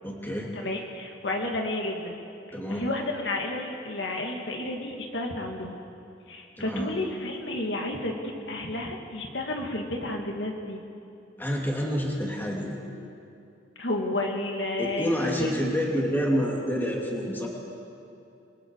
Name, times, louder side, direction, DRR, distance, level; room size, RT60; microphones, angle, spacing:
voice 1, 0.0-0.5 2.5-2.9 6.6-6.9 11.4-12.8 14.8-17.5, equal, 10° left, -2 dB, 3.2 m, -28 dB
voice 2, 0.5-2.2 2.7-5.8 6.3-10.8 13.8-15.6, left 2 dB, 80° left, 1 dB, 2.4 m, -31 dB
28.0 x 22.5 x 4.8 m, 2.7 s
head